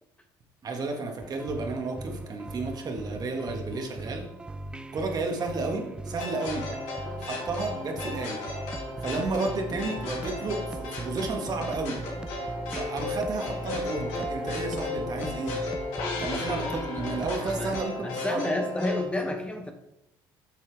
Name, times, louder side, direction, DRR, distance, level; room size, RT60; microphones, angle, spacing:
voice 1, 0.6-4.2 4.9-6.7 7.2-8.4 9.0-12.0 12.7-15.6 16.2-18.6, right 3 dB, 40° right, 2 dB, 1.8 m, -32 dB
sound 1, 1.2-17.8, right 2 dB, 10° right, 0.5 m, -39 dB
sound 2, 6.2-19.0, left 3 dB, 80° left, 2.6 m, -35 dB
voice 2, 18.0-19.7, left 1 dB, 10° left, 5 dB, 0.9 m, -30 dB
8.3 x 6.4 x 3.5 m, 0.80 s
supercardioid pair, 95°, 10 cm